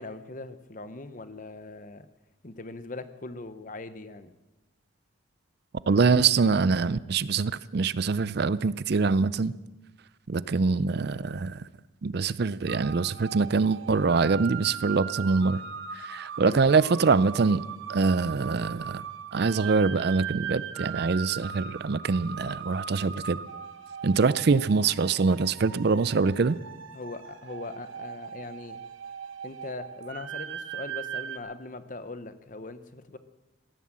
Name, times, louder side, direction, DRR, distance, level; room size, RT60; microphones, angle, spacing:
voice 1, 0.0-2.1 2.4-4.3 16.4-16.6 26.3-26.5 26.9-28.8 29.4-33.2, left 2 dB, 40° left, 11 dB, 0.9 m, -40 dB
voice 2, 5.9-9.5 10.3-11.6 12.0-15.6 16.0-17.6 17.9-19.0 19.3-23.4 24.0-26.6, right 4 dB, 55° right, 18 dB, 0.4 m, -24 dB
sound 1, 12.7-31.4, right 8 dB, 80° right, 1.3 m, -39 dB
16.5 x 11.0 x 7.6 m, 1.1 s
head